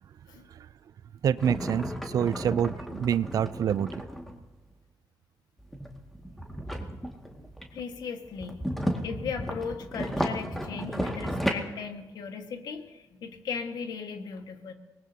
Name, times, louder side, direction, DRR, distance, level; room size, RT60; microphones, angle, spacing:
voice 1, 1.2-4.0, right 8 dB, 55° right, 18 dB, 0.4 m, -27 dB
sound 1, 1.4-4.4 5.6-7.9 8.2-11.5, equal, 5° left, 2.1 m, -34 dB
voice 2, 7.7-8.7 9.0-14.7, left 6 dB, 70° left, 5 dB, 1.7 m, -37 dB
24.0 x 19.5 x 2.9 m, 1.2 s
cardioid pair, 90°, 7 cm